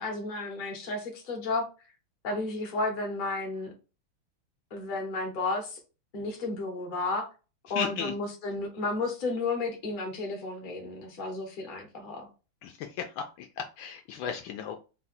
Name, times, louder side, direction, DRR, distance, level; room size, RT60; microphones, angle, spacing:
voice 1, 0.0-1.6 2.2-3.7 4.7-5.8 6.1-7.3 7.7-12.3, left 3 dB, 35° left, 0.8 m, -32 dB
voice 2, 7.8-8.1 12.6-14.8, left 7 dB, 75° left, 1.2 m, -35 dB
4.0 x 2.3 x 4.1 m
omnidirectional pair, 2.4 m